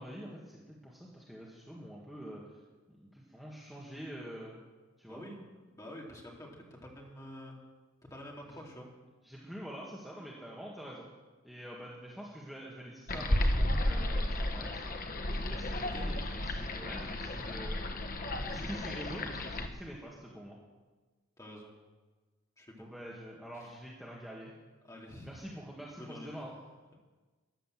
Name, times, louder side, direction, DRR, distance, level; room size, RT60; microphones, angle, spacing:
voice 1, 0.0-2.6 2.9-4.6 5.0-5.2 8.5-8.6 9.2-11.1 11.4-14.7 15.3-17.8 18.4-20.6 22.8-24.5 25.2-26.5, equal, ahead, -5 dB, 1.8 m, -46 dB
voice 2, 5.1-7.6 8.1-8.9 15.6-16.1 16.6-16.7 18.5-18.8 21.4-21.7 22.6-22.9 23.5-23.7 24.8-25.4 25.9-26.4, left 1 dB, 15° left, -1 dB, 2.6 m, -48 dB
sound 1, 13.1-19.7, left 1 dB, 40° left, 1.2 m, -33 dB
14.0 x 11.0 x 7.7 m, 1.3 s
head